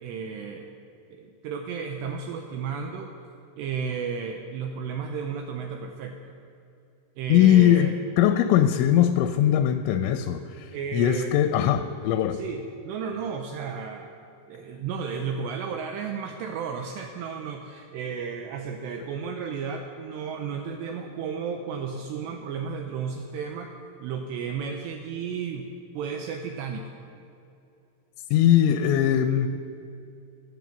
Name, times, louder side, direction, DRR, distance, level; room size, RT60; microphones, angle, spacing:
voice 1, 0.0-0.7 1.1-3.1 3.6-6.3 7.2-8.0 10.7-11.3 12.3-14.1 14.5-23.7 24.0-25.7 25.9-27.0, right 6 dB, 90° right, 4 dB, 2.5 m, -33 dB
voice 2, 7.3-7.9 8.2-12.4 28.3-29.5, left 11 dB, 85° left, 9 dB, 2.8 m, -20 dB
16.5 x 7.7 x 7.2 m, 2.6 s
omnidirectional pair, 5.7 m